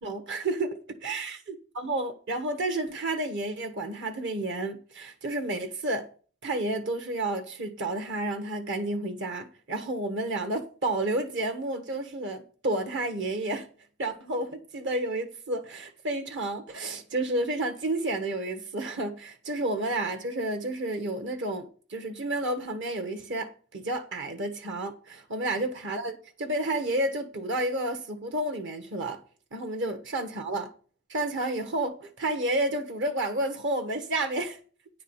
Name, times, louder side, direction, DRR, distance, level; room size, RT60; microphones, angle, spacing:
voice 1, 0.0-6.1 6.4-13.7 14.0-29.2 29.5-30.7 31.1-34.6, right 2 dB, 60° right, 1.2 m, -31 dB
9.7 x 4.8 x 7.1 m
head